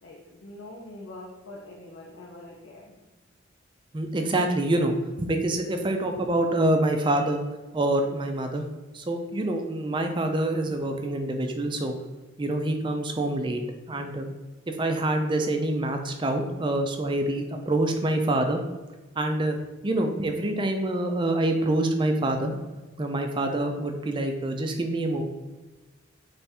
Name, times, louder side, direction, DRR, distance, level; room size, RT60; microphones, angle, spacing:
voice 1, 0.0-3.1, left 1 dB, 65° left, -2 dB, 0.5 m, -44 dB
voice 2, 3.9-7.4 7.7-8.6 8.9-11.9 12.4-13.6 13.9-14.3 14.7-18.6 19.2-19.6 19.8-22.6 23.0-25.2, right 1 dB, 25° right, 4 dB, 0.4 m, -26 dB
3.4 x 3.4 x 4.2 m, 1.2 s
head